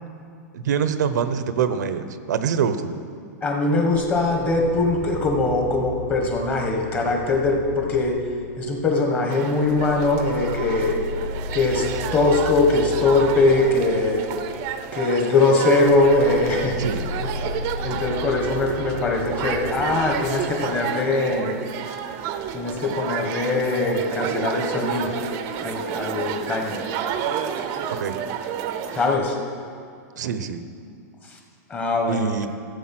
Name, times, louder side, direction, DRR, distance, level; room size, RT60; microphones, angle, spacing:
voice 1, 0.5-2.9 16.8-17.1 27.9-28.2 30.2-30.6 32.1-32.5, right 7 dB, 90° right, 11 dB, 0.9 m, -25 dB
voice 2, 3.4-8.2 8.6-11.0 11.5-14.3 14.9-16.8 17.2-17.3 17.8-21.6 22.5-25.1 25.6-26.8 28.9-29.4 31.2-31.4 31.7-32.3, left 2 dB, 20° left, 2 dB, 1.4 m, -21 dB
sound 1, 3.9-9.1 9.6-21.1, left 4 dB, 80° left, 1.4 m, -35 dB
sound 2, 9.3-29.2, right 8 dB, 35° right, 0.6 m, -30 dB
14.5 x 8.1 x 6.0 m, 2.4 s
supercardioid pair, 160°, 9 cm